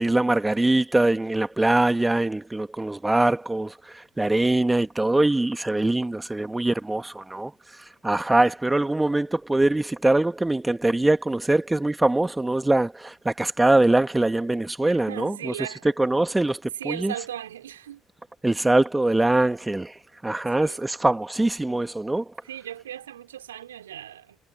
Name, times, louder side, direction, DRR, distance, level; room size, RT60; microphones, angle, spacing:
voice 1, 0.0-7.5 7.8-15.5 16.0-17.1 18.4-22.2, right 2 dB, 15° right, 1.8 m, -23 dB
voice 2, 15.1-15.9 16.8-18.0 20.5-20.8 22.4-24.4, right 11 dB, 85° right, 4.3 m, -37 dB
figure-of-eight pair, 50°, 0 cm